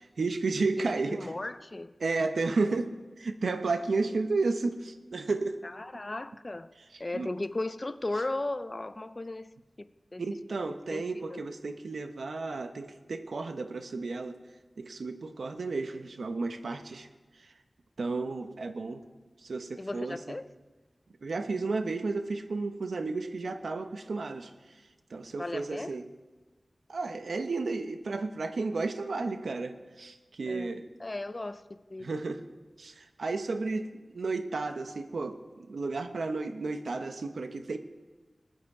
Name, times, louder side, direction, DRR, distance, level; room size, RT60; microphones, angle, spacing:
voice 1, 0.0-1.3 2.0-2.9 3.2-5.6 7.1-7.3 10.2-14.4 14.8-17.1 18.0-19.0 19.4-20.2 21.2-24.5 25.1-26.0 26.9-30.9 32.0-32.4 32.8-33.9 34.1-37.8, right 3 dB, 90° right, 0.9 m, -32 dB
voice 2, 0.8-2.0 5.6-6.7 7.0-10.2 10.9-11.0 11.3-11.4 19.8-20.5 25.4-25.9 30.5-32.2, left 2 dB, 30° left, 0.5 m, -36 dB
19.5 x 9.4 x 4.8 m
wide cardioid pair, 90°, 0 cm